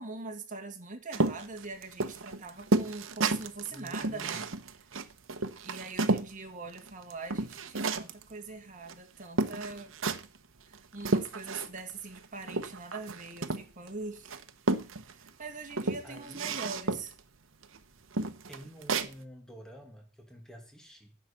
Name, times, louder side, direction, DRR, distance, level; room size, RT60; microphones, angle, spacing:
voice 1, 0.0-4.8 5.6-9.9 10.7-14.4 15.1-17.1, right 3 dB, 40° right, 2.1 m, -42 dB
sound 1, 1.1-6.3 6.7-8.2 8.9-9.0 9.4-10.4 10.7-11.9 12.2-13.9 14.3-15.3 15.7-17.2 17.6-17.8 18.1-19.1, right 3 dB, 70° right, 1.0 m, -31 dB
voice 2, 3.7-4.4 16.0-16.6 18.5-21.2, equal, 5° left, 2.4 m, -49 dB
10.5 x 7.9 x 7.2 m
head